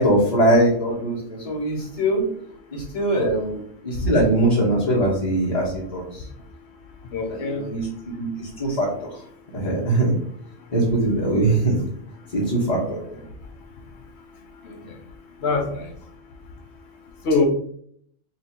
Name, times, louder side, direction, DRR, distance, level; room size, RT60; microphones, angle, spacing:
voice 1, 0.0-2.2 2.7-6.3 7.3-8.9 9.5-10.1 10.7-11.8 12.3-13.2, right 1 dB, 35° left, -8 dB, 1.0 m, -22 dB
voice 2, 7.1-7.6 14.6-14.9 15.4-15.9 17.2-17.5, left 3 dB, 60° left, 4 dB, 1.0 m, -23 dB
3.1 x 3.0 x 4.2 m, 0.65 s
omnidirectional pair, 1.3 m